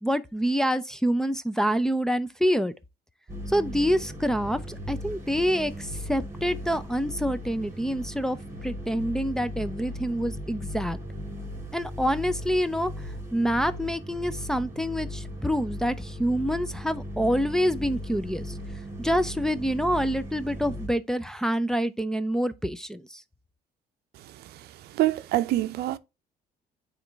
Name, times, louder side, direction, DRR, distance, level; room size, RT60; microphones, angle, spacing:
voice 1, 0.0-2.7 3.5-8.4 8.6-11.0 11.7-12.9 13.3-18.6 19.0-23.2, equal, 5° left, 0.5 m, -26 dB
sound 1, 3.3-20.9, equal, 15° right, 3.1 m, -37 dB
voice 2, 24.5-26.0, right 15 dB, 70° right, 0.6 m, -26 dB
8.8 x 3.2 x 3.4 m
cardioid pair, 110°, 17 cm